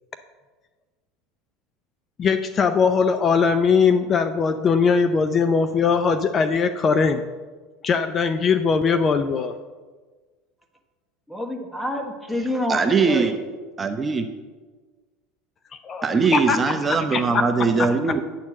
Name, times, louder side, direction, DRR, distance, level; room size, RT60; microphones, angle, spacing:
voice 1, 2.2-7.2 7.8-9.5 15.8-16.7 17.1-17.4 17.8-18.0, left 5 dB, 35° left, 10 dB, 0.5 m, -20 dB
voice 2, 11.3-13.4, left 1 dB, ahead, 4 dB, 1.3 m, -28 dB
voice 3, 12.7-13.4 13.8-14.3 16.0-18.2, right 4 dB, 20° right, 6 dB, 0.8 m, -21 dB
9.3 x 4.4 x 7.3 m, 1.4 s
supercardioid pair, 100°, 0 cm